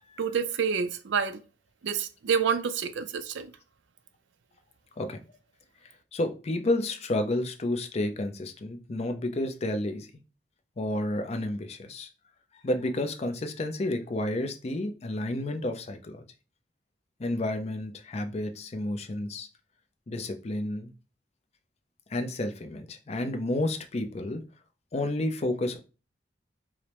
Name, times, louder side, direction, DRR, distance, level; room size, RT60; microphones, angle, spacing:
voice 1, 0.2-1.4 1.8-3.5, right 6 dB, 90° right, 0.4 m, -28 dB
voice 2, 6.1-10.1 10.8-12.1 12.6-16.2 17.2-19.5 20.1-20.9 22.1-24.4 24.9-25.8, left 1 dB, 35° left, 0.5 m, -30 dB
4.8 x 2.0 x 2.9 m
head